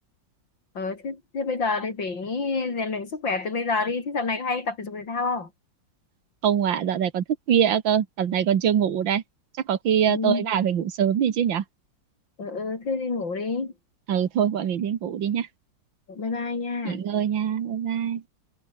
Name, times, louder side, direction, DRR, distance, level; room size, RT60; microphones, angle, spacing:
voice 1, 0.8-5.5 10.1-10.5 12.4-13.7 16.1-17.0, left 4 dB, 80° left, 4.5 m, -28 dB
voice 2, 6.4-9.2 9.6-11.6 14.1-15.5 16.8-18.2, right 9 dB, 90° right, 2.2 m, -23 dB
omnidirectional pair, 2.0 m